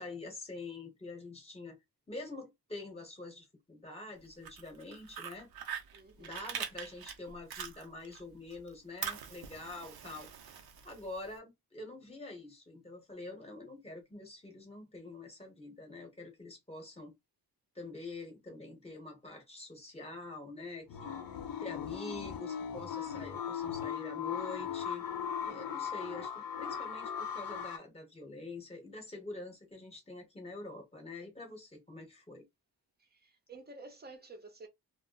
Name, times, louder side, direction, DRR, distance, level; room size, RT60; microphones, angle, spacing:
voice 1, 0.0-1.8 2.1-5.5 6.2-10.3 10.8-17.1 17.7-21.2 21.6-25.1 25.4-32.4, left 2 dB, 15° left, 1.0 m, -46 dB
Fire, 4.3-8.2 8.5-11.3, right 7 dB, 65° right, 0.6 m, -43 dB
voice 2, 5.9-6.5 33.0-34.7, right 3 dB, 25° right, 0.6 m, -51 dB
sound 1, 20.9-27.8, left 8 dB, 60° left, 0.5 m, -38 dB
2.1 x 2.1 x 3.7 m
wide cardioid pair, 125°, 41 cm